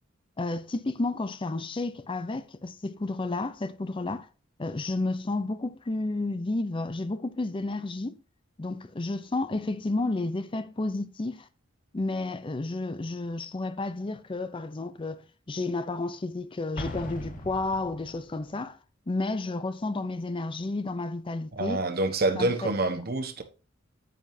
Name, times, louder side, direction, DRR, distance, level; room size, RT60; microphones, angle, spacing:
voice 1, 0.4-4.3 4.6-8.2 8.6-11.5 11.9-18.8 19.1-21.8 22.4-22.5, left 2 dB, 25° left, 0.5 m, -31 dB
Explosion, 16.8-18.4, left 1 dB, 45° left, 1.2 m, -39 dB
voice 2, 21.5-23.4, right 2 dB, 50° right, 1.2 m, -27 dB
9.4 x 7.6 x 2.7 m
head